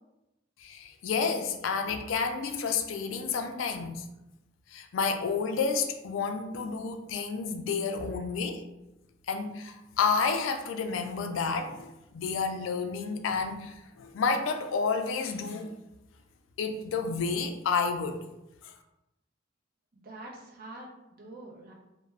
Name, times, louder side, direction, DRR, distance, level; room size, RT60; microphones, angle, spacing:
voice 1, 0.6-4.1 4.7-8.6 9.3-15.7 16.6-18.2 18.6-18.7, left 5 dB, 90° left, 6 dB, 0.3 m, -30 dB
voice 2, 19.9-21.7, right 2 dB, 50° right, -2 dB, 0.6 m, -46 dB
2.3 x 2.1 x 3.2 m, 0.94 s
head